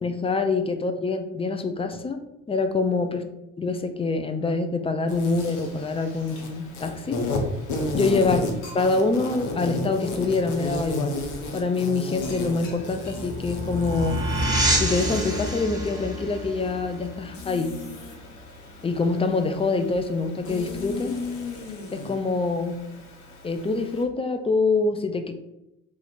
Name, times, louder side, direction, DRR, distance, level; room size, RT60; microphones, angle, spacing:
voice 1, 0.0-2.2 2.5-3.3 3.6-7.2 7.9-8.5 8.7-11.1 11.5-14.3 14.8-17.7 18.8-21.1 21.9-22.8 23.4-25.4, left 3 dB, 15° left, 7 dB, 0.3 m, -25 dB
Insect, 5.1-24.0, left 2 dB, 50° left, 0.9 m, -34 dB
sound 1, 5.3-6.8 7.7-7.8 8.2-8.3 8.6-9.2 10.9-11.2 12.2-13.4, left 2 dB, 70° left, 1.1 m, -47 dB
sound 2, 12.8-18.0, right 1 dB, 10° right, 1.0 m, -28 dB
2.8 x 2.5 x 4.1 m, 0.88 s
hypercardioid pair, 55°, 38 cm